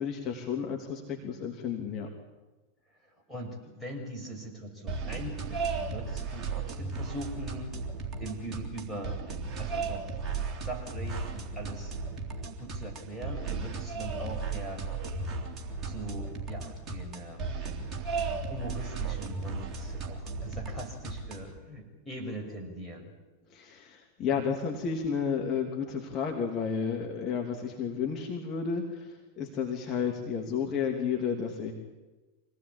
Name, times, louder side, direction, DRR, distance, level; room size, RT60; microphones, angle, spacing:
voice 1, 0.0-2.1 23.5-31.7, left 6 dB, 30° left, 1 dB, 3.0 m, -32 dB
voice 2, 2.9-7.7 8.2-9.2 9.6-10.2 10.6-11.9 12.6-14.8 15.8-17.5 18.2-23.1, right 1 dB, 5° right, -1 dB, 6.6 m, -41 dB
sound 1, 4.9-21.6, right 4 dB, 25° right, 3.3 m, -35 dB
25.5 x 18.0 x 8.9 m, 1.2 s
figure-of-eight pair, 90°, 0 cm